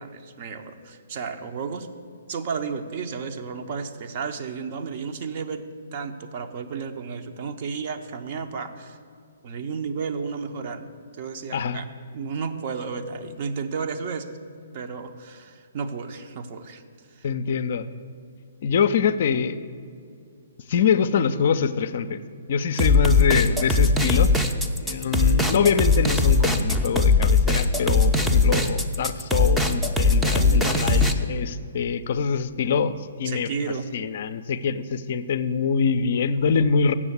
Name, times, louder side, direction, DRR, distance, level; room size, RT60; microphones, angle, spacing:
voice 1, 0.0-1.9 2.3-5.6 5.9-9.0 9.4-10.9 11.2-11.9 12.1-14.4 14.7-16.8 17.1-17.3 22.7-22.9 30.4-31.1 33.2-33.9, right 5 dB, 45° right, 7 dB, 0.7 m, -33 dB
voice 2, 17.2-17.9 18.6-19.6 20.7-22.2 22.5-24.3 24.8-33.5 33.9-36.9, left 6 dB, 50° left, 11 dB, 0.4 m, -24 dB
sound 1, 22.8-31.1, left 3 dB, 5° right, 0.5 m, -20 dB
7.3 x 7.0 x 8.1 m, 2.4 s
figure-of-eight pair, 125°, 0 cm